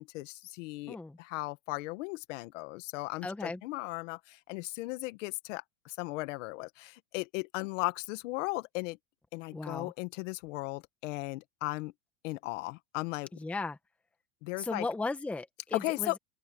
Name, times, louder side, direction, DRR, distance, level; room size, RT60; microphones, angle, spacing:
voice 1, 0.0-9.0 9.3-11.9 12.2-13.3 14.4-14.9 15.7-16.2, left 21 dB, 50° left, 1.6 m, -36 dB
voice 2, 3.2-3.6 9.5-9.9 13.4-13.8 14.6-16.2, left 3 dB, 5° left, 1.0 m, -36 dB
open air
supercardioid pair, 160°, 48 cm